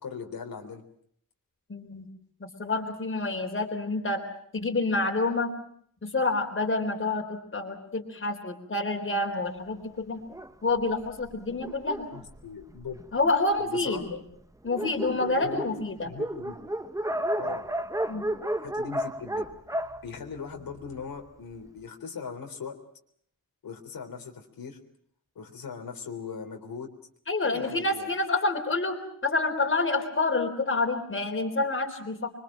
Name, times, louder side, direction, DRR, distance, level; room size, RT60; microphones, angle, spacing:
voice 1, 0.0-0.8 12.1-13.0 13.6-14.2 15.4-15.8 16.0-16.6 17.4-17.7 18.5-19.5 20.0-22.8 23.6-24.8 25.4-26.9 27.4-28.1, left 6 dB, 85° left, 3 dB, 3.7 m, -39 dB
voice 2, 1.7-2.1 2.4-4.2 4.5-5.5 6.0-10.2 10.6-12.1 13.1-14.0 14.6-16.1 18.1-18.2 27.3-32.3, left 3 dB, 35° left, 4 dB, 3.9 m, -28 dB
Dog, 10.3-13.3 14.0-14.1 14.4-14.5 14.6-21.0, right 1 dB, 10° right, 1.0 m, -33 dB
26.5 x 24.0 x 7.5 m, 0.65 s
wide cardioid pair, 145°, 34 cm